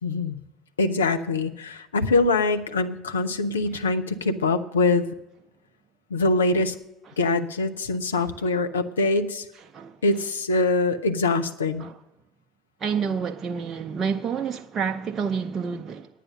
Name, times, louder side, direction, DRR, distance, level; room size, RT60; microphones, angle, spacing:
voice 1, 0.0-0.4 0.8-5.0 6.1-6.7 7.2-9.5 10.0-11.8, left 3 dB, 75° left, 0.6 m, -23 dB
voice 2, 12.8-16.1, right 6 dB, 35° right, 0.6 m, -28 dB
10.0 x 9.3 x 6.7 m
figure-of-eight pair, 60°, 0 cm